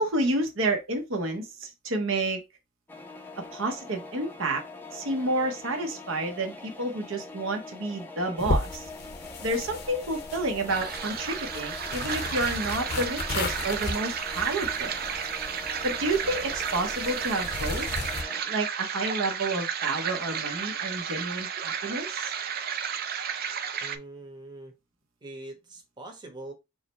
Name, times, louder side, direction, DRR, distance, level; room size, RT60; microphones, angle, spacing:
voice 1, 0.0-2.4 3.5-4.6 4.9-8.9 9.4-14.9 15.8-17.9 18.4-22.3, right 2 dB, 70° right, 0.8 m, -30 dB
sound 1, 2.9-18.4, left 2 dB, 10° left, 0.5 m, -44 dB
sound 2, 8.4-18.2, left 3 dB, 50° left, 0.6 m, -35 dB
sound 3, 10.7-24.0, right 7 dB, 45° right, 0.4 m, -33 dB
voice 2, 23.8-24.7 25.2-26.5, right 2 dB, 20° right, 1.0 m, -43 dB
4.8 x 2.1 x 4.1 m
head